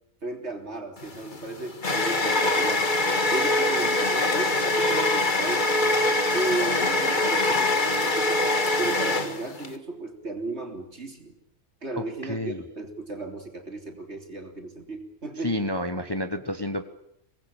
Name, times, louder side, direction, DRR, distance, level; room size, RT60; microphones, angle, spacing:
voice 1, 0.2-2.9 3.3-5.7 6.3-8.5 8.8-11.4 11.8-15.6, right 2 dB, 50° right, 3 dB, 3.8 m, -35 dB
sound 1, 1.0-9.7, left 2 dB, 35° left, 1.9 m, -24 dB
voice 2, 12.0-12.6 15.4-16.8, left 1 dB, 20° left, 8 dB, 1.2 m, -30 dB
24.5 x 19.5 x 9.0 m, 0.76 s
omnidirectional pair, 1.5 m